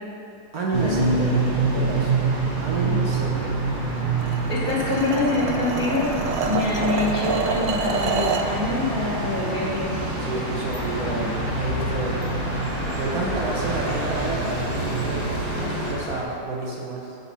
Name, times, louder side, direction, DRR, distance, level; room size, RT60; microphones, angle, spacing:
voice 1, 0.5-2.2 2.6-3.6 10.2-15.3 15.5-17.2, right 3 dB, 55° right, -3 dB, 1.5 m, -30 dB
sound 1, 0.7-15.9, right 3 dB, 35° right, 1.0 m, -26 dB
sound 2, 4.2-8.5, right 5 dB, 85° right, 1.4 m, -27 dB
voice 2, 4.5-10.0, left 3 dB, 55° left, -7 dB, 2.6 m, -25 dB
sound 3, 10.6-16.2, left 2 dB, 80° left, 0.3 m, -34 dB
8.8 x 4.3 x 7.1 m, 2.9 s
omnidirectional pair, 1.9 m